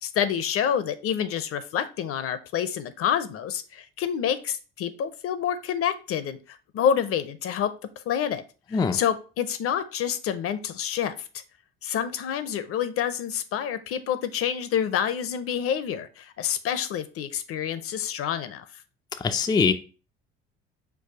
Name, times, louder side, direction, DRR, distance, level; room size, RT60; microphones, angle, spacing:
voice 1, 0.0-7.7 8.1-8.4 8.7-11.3 11.8-18.7, left 9 dB, 50° left, 0.6 m, -28 dB
voice 2, 19.2-19.7, left 5 dB, 15° left, 0.3 m, -22 dB
4.7 x 2.3 x 4.6 m
hypercardioid pair, 70°, 30 cm